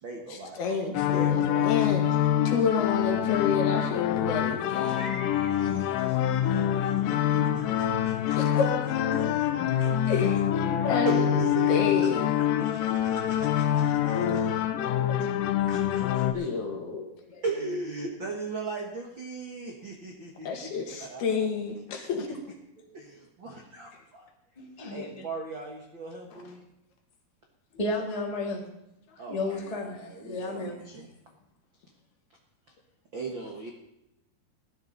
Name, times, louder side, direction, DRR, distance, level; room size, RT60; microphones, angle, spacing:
voice 1, 0.0-0.6 1.1-1.9 4.9-8.6 9.1-9.5 9.8-10.1 11.0-12.1 12.4-14.5 15.6-16.5 17.4-20.5 21.0-21.2 22.9-24.3 24.9-26.6 29.2-31.1 33.1-33.7, right 3 dB, 80° right, 0 dB, 1.0 m, -38 dB
voice 2, 0.6-2.0 2.5-5.0 7.6-7.7 8.4-8.6 10.1-10.4 10.6-11.3 11.7-12.3 15.2-15.3 16.3-17.1 20.4-22.4, left 5 dB, 65° left, 2 dB, 3.7 m, -29 dB
sound 1, 0.9-16.3, left 10 dB, 85° left, 1.9 m, -25 dB
voice 3, 24.6-25.1 27.8-28.6 29.3-30.8, left 2 dB, 15° left, -1 dB, 1.5 m, -33 dB
18.0 x 12.0 x 4.1 m, 0.84 s
omnidirectional pair, 4.9 m